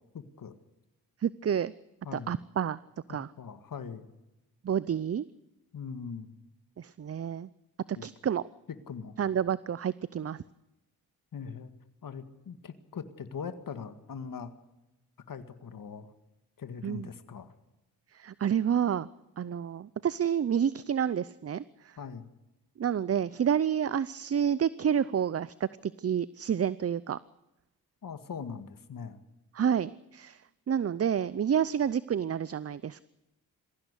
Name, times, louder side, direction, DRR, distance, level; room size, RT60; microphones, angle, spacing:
voice 1, 0.1-0.5 2.0-2.3 3.1-4.1 5.7-6.4 8.0-8.1 8.9-9.2 11.3-11.7 12.0-14.5 15.3-16.1 16.6-17.5 22.0-22.3 28.0-29.2, left 6 dB, 60° left, 9 dB, 2.0 m, -41 dB
voice 2, 1.2-1.7 2.1-2.8 3.1-3.3 4.6-5.2 6.8-7.5 8.0-8.4 9.2-10.4 16.8-17.1 18.1-19.1 19.4-22.0 22.8-27.2 29.5-30.4 30.7-33.0, right 8 dB, 40° right, 18 dB, 0.6 m, -29 dB
22.0 x 16.0 x 8.3 m, 0.97 s
cardioid pair, 60°, 38 cm